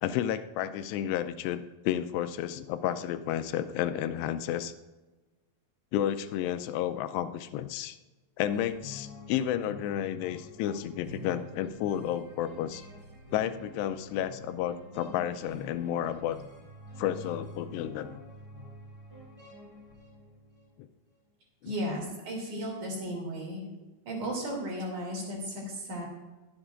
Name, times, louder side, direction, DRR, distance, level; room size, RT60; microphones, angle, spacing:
voice 1, 0.0-4.7 5.9-8.0 8.4-12.9 13.3-16.4 17.0-18.2 21.6-21.7, left 11 dB, 90° left, 11 dB, 2.7 m, -31 dB
sound 1, 8.5-20.7, equal, 5° left, 3.3 m, -47 dB
voice 2, 21.7-23.6 24.1-26.1, equal, 50° right, -2 dB, 3.8 m, -35 dB
22.5 x 8.0 x 2.5 m, 1.2 s
omnidirectional pair, 4.8 m